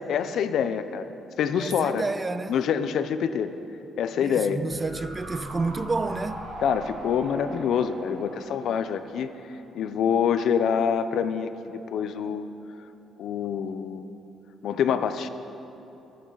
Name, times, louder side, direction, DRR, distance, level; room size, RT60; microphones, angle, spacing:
voice 1, 0.1-1.1 1.4-2.0 2.5-3.5 4.0-4.6 6.6-9.3 9.7-12.5 13.2-14.1 14.6-15.3, left 7 dB, 75° left, 0.6 m, -26 dB
voice 2, 1.6-2.6 4.2-6.5, right 3 dB, 25° right, 0.4 m, -30 dB
sound 1, 4.7-9.9 10.2-10.3, right 1 dB, 60° right, 3.4 m, -41 dB
25.0 x 8.8 x 4.0 m
cardioid pair, 90°, 0 cm